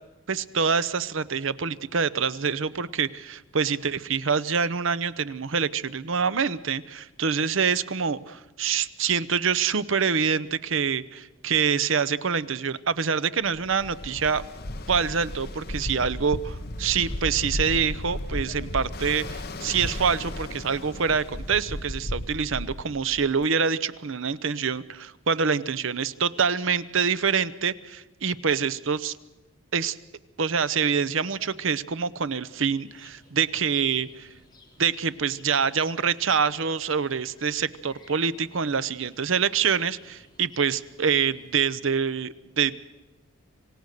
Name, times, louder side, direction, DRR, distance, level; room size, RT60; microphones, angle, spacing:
voice 1, 0.3-14.4 14.9-29.1 29.7-30.0 30.4-34.3 34.8-42.8, right 6 dB, 65° right, 15 dB, 0.7 m, -26 dB
Ocean, 13.5-23.4, left 1 dB, 50° left, 1.2 m, -34 dB
sound 1, 32.8-41.5, left 2 dB, 20° left, 3.5 m, -57 dB
26.5 x 17.0 x 6.6 m, 1.1 s
head